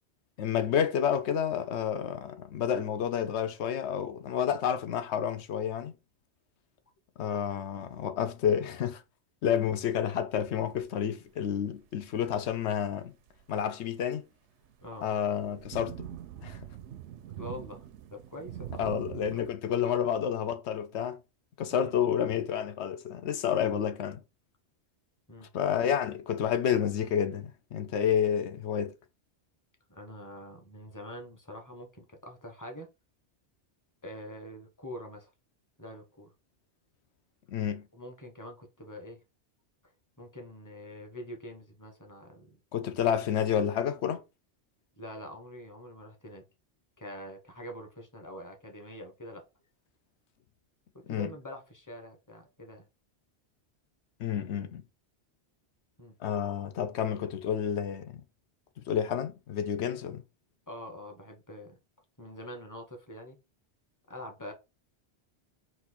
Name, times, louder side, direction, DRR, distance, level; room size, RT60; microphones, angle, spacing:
voice 1, 0.4-5.9 7.2-9.0 9.4-13.1 13.5-14.2 15.0-16.1 16.4-16.6 18.8-21.2 21.6-24.2 25.5-28.9 37.5-37.9 42.7-44.2 51.1-51.3 54.2-54.8 56.2-58.2 58.9-60.2, left 8 dB, 80° left, 0.9 m, -29 dB
sound 1, 10.4-10.6 11.5-11.6 12.1-12.6 13.3-13.4 14.8-19.5, right 10 dB, 85° right, 0.9 m, -44 dB
voice 2, 17.4-18.9 19.3-19.5 19.8-20.1 21.7-21.9 25.3-25.5 29.9-32.9 34.0-35.3 35.8-36.3 37.9-39.2 40.2-42.6 42.8-42.9 45.0-46.5 47.0-49.4 50.9-52.8 56.0-56.2 60.7-61.8 62.2-63.4 64.1-64.5, left 1 dB, 20° left, 0.9 m, -45 dB
4.3 x 2.7 x 4.2 m
omnidirectional pair, 1.1 m